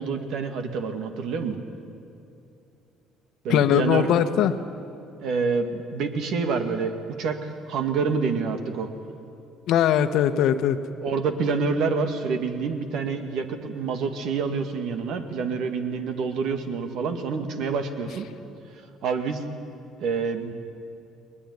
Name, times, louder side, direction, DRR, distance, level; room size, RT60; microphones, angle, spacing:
voice 1, 0.0-1.6 3.4-4.2 5.2-8.9 11.0-18.3 19.0-19.4 20.0-20.5, right 5 dB, 70° right, 6 dB, 2.2 m, -27 dB
voice 2, 3.5-4.5 9.7-10.8, left 10 dB, 70° left, 10 dB, 1.2 m, -20 dB
21.0 x 20.5 x 9.8 m, 2.7 s
supercardioid pair, 90°, 0 cm